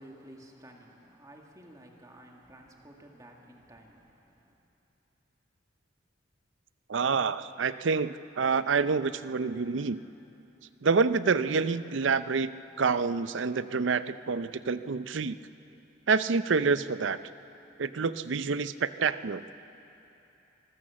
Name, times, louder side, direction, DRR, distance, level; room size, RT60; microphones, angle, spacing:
voice 1, 0.0-4.6, right 1 dB, 20° right, 0 dB, 2.1 m, -52 dB
voice 2, 6.9-10.0 10.8-12.5 12.8-15.4 16.1-17.2 17.8-19.4, right 5 dB, 70° right, 14 dB, 0.6 m, -27 dB
25.0 x 15.0 x 7.5 m, 3.0 s
head